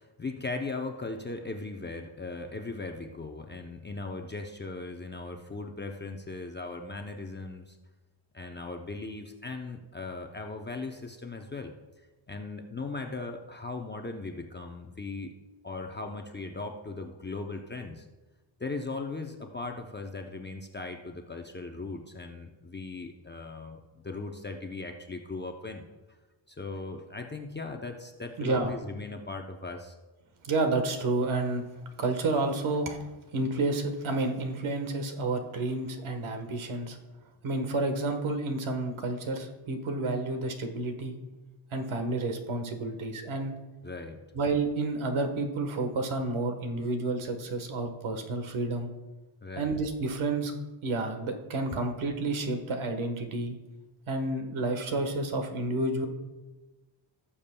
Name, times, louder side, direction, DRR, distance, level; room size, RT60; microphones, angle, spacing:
voice 1, 0.0-7.8 8.3-11.7 12.3-15.3 15.6-18.1 18.6-25.9 26.5-30.0 43.8-44.2 49.4-49.7 51.7-51.8, left 3 dB, 25° left, 3 dB, 0.6 m, -38 dB
voice 2, 28.4-28.7 30.4-31.6 32.0-33.0 33.3-37.0 37.4-41.2 41.7-43.5 44.3-48.9 49.6-50.5 50.8-53.6 54.1-56.1, right 2 dB, 80° right, 5 dB, 1.4 m, -30 dB
17.5 x 7.1 x 2.2 m, 1.2 s
wide cardioid pair, 130°, 48 cm